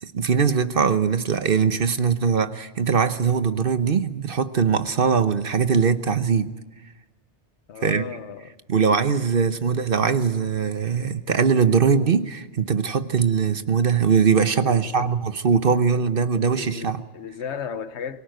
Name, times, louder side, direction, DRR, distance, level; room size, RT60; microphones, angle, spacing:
voice 1, 0.0-6.5 7.8-8.0 8.7-17.0, right 6 dB, 50° right, 1.1 m, -21 dB
voice 2, 7.7-8.6 14.6-15.1 15.7-15.8 16.1-18.2, left 7 dB, 70° left, 1.3 m, -35 dB
24.0 x 17.5 x 9.2 m
omnidirectional pair, 1.2 m